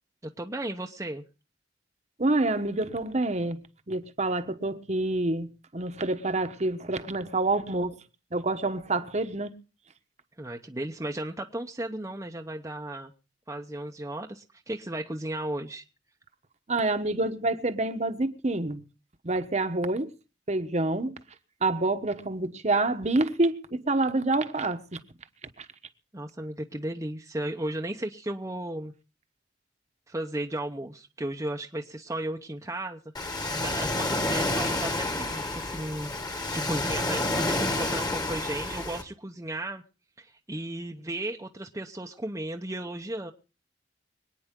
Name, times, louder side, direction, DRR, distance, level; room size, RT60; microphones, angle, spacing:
voice 1, 0.4-1.2 10.4-13.1 13.5-15.8 26.1-28.9 30.1-33.0 33.4-39.8 40.2-43.3, right 1 dB, 15° right, 0.9 m, -35 dB
voice 2, 2.2-3.6 3.9-8.0 8.3-9.5 16.7-18.8 19.2-20.1 20.5-21.2 21.6-25.0 25.6-25.7, right 2 dB, 40° right, 1.2 m, -27 dB
Ocean, 33.1-39.0, left 2 dB, 20° left, 1.7 m, -29 dB
25.5 x 9.4 x 3.7 m
head